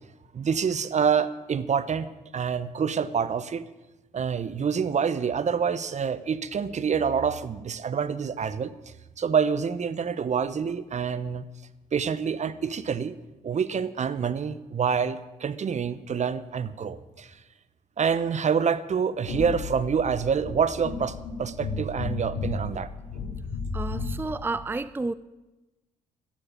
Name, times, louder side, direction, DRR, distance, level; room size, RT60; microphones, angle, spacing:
voice 1, 0.3-3.7 4.1-8.7 9.2-11.4 11.9-13.2 13.4-17.3 18.0-22.9, right 6 dB, 45° right, 1.0 m, -27 dB
sound 1, 19.2-24.3, left 4 dB, 80° left, 3.0 m, -33 dB
voice 2, 23.7-25.1, right 3 dB, 15° right, 0.5 m, -31 dB
13.0 x 10.0 x 9.0 m
hypercardioid pair, 50°, 17 cm